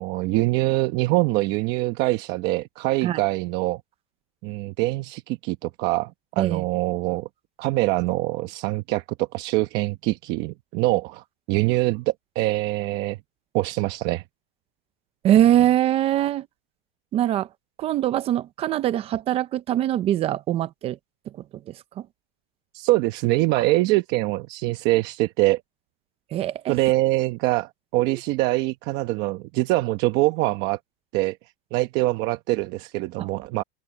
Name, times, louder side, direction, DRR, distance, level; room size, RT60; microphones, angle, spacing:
voice 1, 0.0-3.8 4.4-7.3 7.6-13.2 13.5-14.2 22.7-25.6 26.7-30.8 31.1-31.4 31.7-33.6, right 19 dB, 35° right, 1.0 m, -24 dB
voice 2, 15.2-16.5 17.1-17.5 17.8-21.0 21.3-22.1 23.6-23.7 26.3-26.8 28.0-28.2 33.2-33.3, right 12 dB, 20° right, 0.5 m, -23 dB
supercardioid pair, 165°, 29 cm